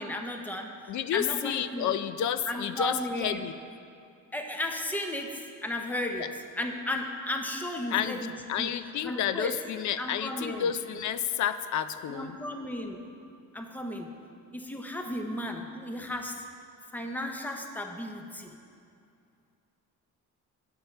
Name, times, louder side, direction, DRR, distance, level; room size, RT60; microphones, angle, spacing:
voice 1, 0.0-1.9 2.5-3.5 4.3-8.3 8.6-8.7 9.0-9.6 10.0-10.7 12.1-13.0 13.5-14.1 14.5-16.4 16.9-18.5, left 1 dB, 5° left, 3 dB, 0.7 m, -34 dB
voice 2, 0.9-3.5 6.2-6.3 7.9-8.2 8.5-12.4, left 9 dB, 60° left, 12 dB, 0.5 m, -30 dB
18.5 x 7.1 x 4.4 m, 2.4 s
cardioid pair, 180°, 32 cm